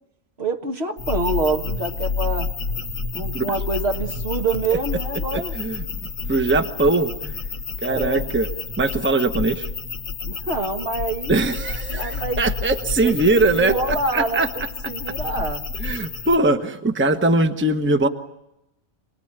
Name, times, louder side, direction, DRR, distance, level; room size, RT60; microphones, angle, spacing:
voice 1, 0.4-2.5 3.1-5.5 7.8-8.3 10.2-11.4 11.9-12.4 13.0-15.6, right 3 dB, 55° right, 4 dB, 1.8 m, -26 dB
sound 1, 1.0-16.4, left 4 dB, 85° left, 1.7 m, -30 dB
voice 2, 5.3-5.8 6.3-7.4 7.8-8.5 8.8-9.7 11.3-14.5 15.8-18.1, right 2 dB, 10° right, 7 dB, 1.0 m, -21 dB
27.5 x 20.5 x 8.9 m, 0.88 s
omnidirectional pair, 1.3 m